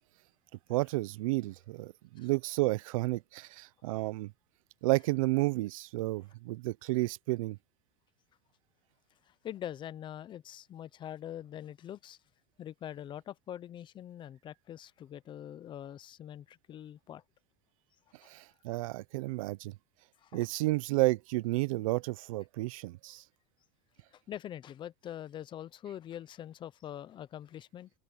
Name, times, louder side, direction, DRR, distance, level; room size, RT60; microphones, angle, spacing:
voice 1, 0.7-4.3 4.8-7.6 18.2-19.7 20.3-23.2, right 21 dB, 90° right, 0.6 m, -31 dB
voice 2, 9.4-12.2 12.6-17.2 20.2-20.5 24.1-27.9, left 11 dB, 30° left, 0.7 m, -44 dB
supercardioid pair, 145°, 17 cm